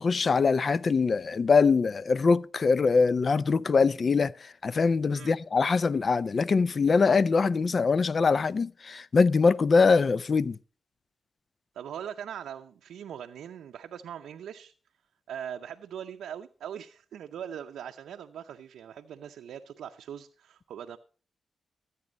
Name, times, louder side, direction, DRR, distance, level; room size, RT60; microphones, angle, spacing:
voice 1, 0.0-4.3 4.6-10.6, left 4 dB, 50° left, 0.5 m, -23 dB
voice 2, 11.7-14.7 15.3-21.0, right 9 dB, 85° right, 0.5 m, -41 dB
14.0 x 8.3 x 5.1 m
supercardioid pair, 50°, 0 cm